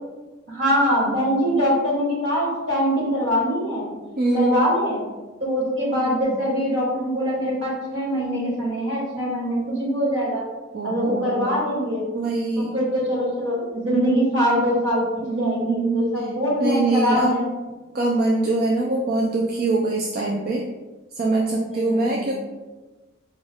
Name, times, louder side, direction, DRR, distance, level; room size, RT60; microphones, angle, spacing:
voice 1, 0.5-5.0 5.4-10.4 10.8-12.0 12.6-17.5 21.6-22.3, equal, 70° right, -5 dB, 1.5 m, -23 dB
voice 2, 4.2-4.6 10.7-11.6 12.1-12.7 15.2-16.0 16.6-17.3 17.9-20.6 21.2-22.3, right 2 dB, 50° right, -2 dB, 0.4 m, -23 dB
4.4 x 2.3 x 3.4 m, 1.2 s
head